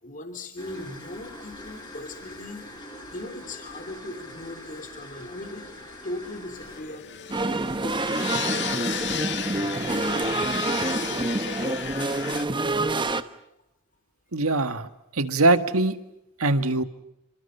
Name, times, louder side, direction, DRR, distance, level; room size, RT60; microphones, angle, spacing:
voice 1, 0.0-2.7 3.1-5.7 6.0-10.5 10.8-13.2, left 2 dB, 40° left, 7 dB, 3.4 m, -39 dB
sound 1, 0.6-6.8, left 1 dB, 20° left, 7.3 m, -43 dB
sound 2, 6.6-12.4, left 9 dB, 55° left, 2.0 m, -34 dB
sound 3, 7.3-13.2, right 2 dB, 20° right, 1.1 m, -27 dB
voice 2, 14.3-15.9 16.4-16.8, right 2 dB, 80° right, 9 dB, 1.8 m, -22 dB
29.0 x 27.5 x 5.8 m, 0.84 s
head